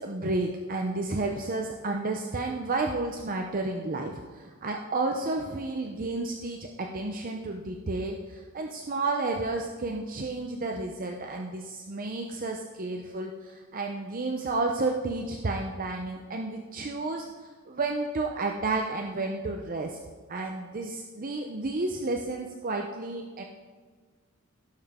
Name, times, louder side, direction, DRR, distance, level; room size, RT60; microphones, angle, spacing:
voice 1, 0.0-17.3 17.7-20.0 20.3-23.4, right 2 dB, 40° right, 2 dB, 0.7 m, -31 dB
17.0 x 6.9 x 3.7 m, 1.5 s
head